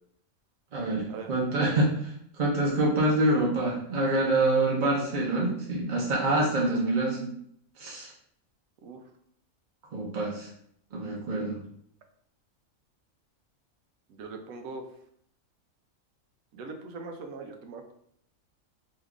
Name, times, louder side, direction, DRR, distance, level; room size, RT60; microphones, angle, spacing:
voice 1, 0.7-2.1 2.4-7.3 7.8-8.1 9.9-10.5 10.9-11.6, right 2 dB, 45° right, -3 dB, 0.7 m, -26 dB
voice 2, 14.1-14.8 16.5-17.9, right 4 dB, 85° right, 5 dB, 1.0 m, -41 dB
3.1 x 2.3 x 3.5 m, 0.69 s
omnidirectional pair, 1.4 m